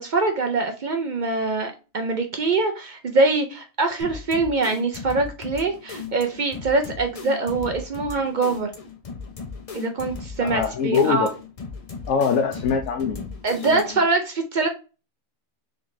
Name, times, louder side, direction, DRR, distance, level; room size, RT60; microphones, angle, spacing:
voice 1, 0.0-8.7 9.7-11.3 13.4-14.7, right 3 dB, 65° right, 5 dB, 0.4 m, -24 dB
sound 1, 4.0-14.1, left 5 dB, 40° left, 0.5 m, -36 dB
voice 2, 10.4-11.3 12.1-13.8, left 6 dB, 70° left, 4 dB, 1.0 m, -23 dB
3.9 x 3.4 x 2.6 m, 0.32 s
omnidirectional pair, 1.5 m